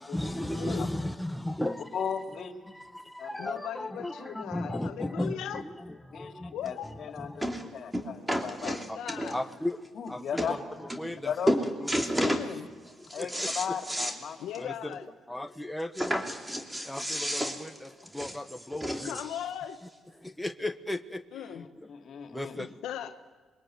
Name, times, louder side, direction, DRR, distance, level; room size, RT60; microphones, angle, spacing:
voice 1, 0.0-1.9 2.7-6.6 6.8-7.8 9.3-9.8 10.1-12.4 13.2-13.8 14.6-15.0 15.3-16.3 16.8-19.2 20.2-21.6 22.3-22.8, left 1 dB, 5° left, 8 dB, 1.2 m, -36 dB
voice 2, 0.6-0.9 3.4-5.6 6.5-6.9 8.6-9.4 12.2-12.7 14.4-15.1 19.0-19.8 21.3-21.7 22.6-23.2, left 10 dB, 80° left, 7 dB, 1.2 m, -38 dB
voice 3, 1.9-2.5 3.2-3.6 4.7-4.8 6.1-6.3 6.6-7.5 7.7-8.7 9.9-10.6 11.2-11.7 13.1-14.7 21.5-22.5, left 7 dB, 60° left, 6 dB, 2.8 m, -36 dB
sound 1, 6.7-6.8 7.4-7.6 7.9-9.5 10.1-10.2 10.4-10.5 10.9-11.2 11.5-12.5 12.9-14.2 14.5-14.6 15.0-15.1 15.9-19.4 20.2-20.3, equal, 10° right, 3.0 m, -31 dB
27.5 x 23.0 x 9.4 m, 1.4 s
cardioid pair, 90°, 0 cm